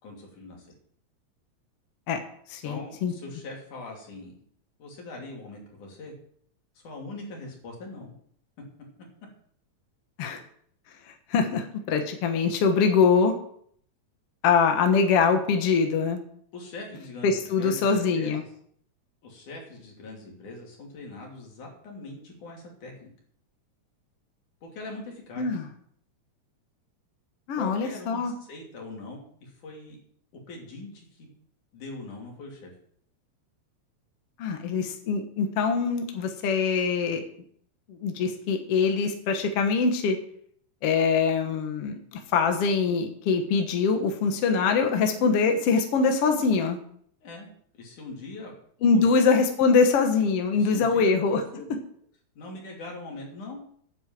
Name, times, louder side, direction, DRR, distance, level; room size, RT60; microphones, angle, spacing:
voice 1, 0.0-0.7 2.6-4.3 4.8-6.1 6.8-8.1 16.5-18.5 19.2-23.1 24.6-25.5 27.6-30.0 30.5-31.3 31.7-32.7 47.2-47.5 47.7-48.5 48.9-49.0 50.5-51.1 51.6-51.7 52.4-53.6, left 2 dB, 85° left, -1 dB, 4.4 m, -41 dB
voice 2, 2.5-3.1 10.2-10.4 11.3-13.4 14.4-16.2 17.2-18.4 25.4-25.6 27.5-28.3 34.4-37.2 37.9-40.2 40.8-46.8 48.8-51.6, left 5 dB, 60° left, 5 dB, 2.1 m, -23 dB
9.5 x 7.9 x 7.4 m, 0.63 s
omnidirectional pair, 3.4 m